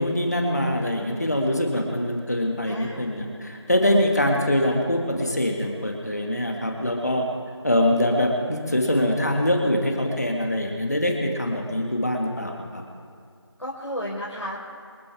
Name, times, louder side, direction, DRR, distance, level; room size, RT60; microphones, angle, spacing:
voice 1, 0.0-7.2 7.6-12.8, left 1 dB, 35° left, 1 dB, 2.1 m, -24 dB
voice 2, 2.6-3.2 13.6-14.6, equal, 80° left, -6 dB, 4.4 m, -33 dB
26.5 x 10.5 x 3.6 m, 2.3 s
figure-of-eight pair, 175°, 15 cm